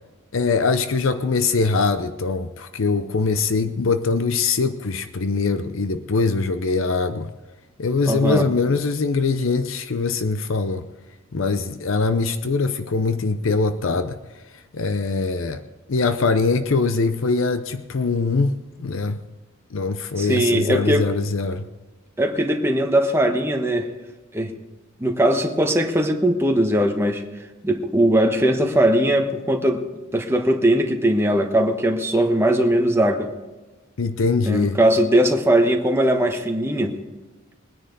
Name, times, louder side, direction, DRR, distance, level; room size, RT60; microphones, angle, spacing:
voice 1, 0.3-7.3 7.8-10.9 11.3-14.2 14.7-15.6 15.9-19.2 19.7-21.7 34.0-34.8, left 4 dB, 70° left, 10 dB, 0.7 m, -22 dB
voice 2, 8.1-8.5 20.1-21.0 22.2-23.9 24.3-24.5 25.0-27.2 27.6-29.9 30.1-33.3 34.4-37.0, right 1 dB, 10° right, 3 dB, 1.2 m, -20 dB
21.5 x 9.9 x 4.0 m, 1.2 s
head